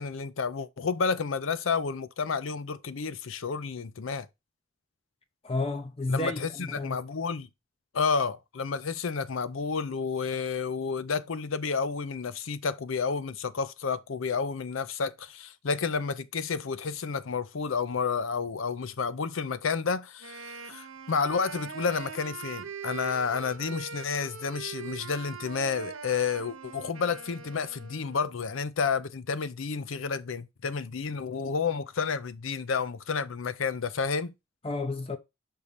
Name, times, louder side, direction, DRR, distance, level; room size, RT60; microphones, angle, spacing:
voice 1, 0.0-4.3 6.1-7.5 7.9-34.3, left 5 dB, 80° left, 0.6 m, -30 dB
voice 2, 5.4-7.0 34.6-35.2, left 2 dB, 30° left, 0.5 m, -31 dB
Wind instrument woodwind instrument, 20.2-28.3, right 6 dB, 90° right, 0.9 m, -42 dB
5.5 x 4.2 x 5.0 m
head